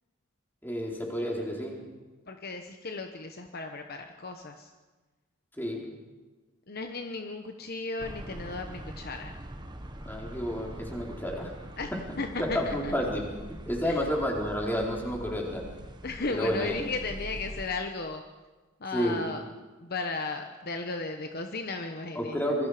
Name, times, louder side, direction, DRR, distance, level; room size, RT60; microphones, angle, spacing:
voice 1, 0.6-1.8 5.6-5.9 10.0-11.5 12.4-13.3 13.7-15.7 16.3-16.8 18.9-19.3 22.1-22.7, equal, 10° left, -2 dB, 4.2 m, -30 dB
voice 2, 2.3-4.7 6.7-9.4 11.8-11.9 12.2-12.9 13.8-14.1 16.0-18.2 18.8-19.4 19.8-22.4, left 3 dB, 50° left, 5 dB, 1.1 m, -35 dB
sound 1, 8.0-17.7, right 1 dB, 20° right, 1.4 m, -43 dB
26.5 x 22.0 x 5.1 m, 1.3 s
head